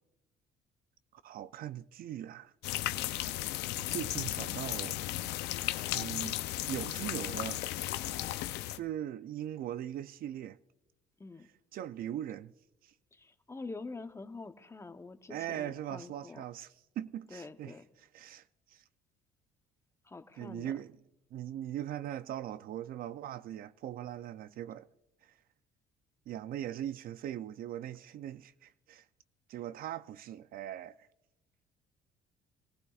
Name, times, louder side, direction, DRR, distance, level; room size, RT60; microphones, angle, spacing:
voice 1, 1.1-2.5 3.9-5.0 5.9-6.4 6.7-7.6 8.7-10.6 11.7-12.5 12.8-12.9 15.3-18.8 20.4-21.0 21.3-24.9 25.2-25.4 26.3-29.1 29.5-31.1, right 11 dB, 60° right, 0.4 m, -40 dB
sound 1, 2.6-8.8, left 15 dB, 85° left, 0.5 m, -35 dB
voice 2, 13.1-16.4 17.3-17.9 20.0-20.7, left 3 dB, 15° left, 0.8 m, -46 dB
25.5 x 15.5 x 2.4 m
cardioid pair, 110°, 17 cm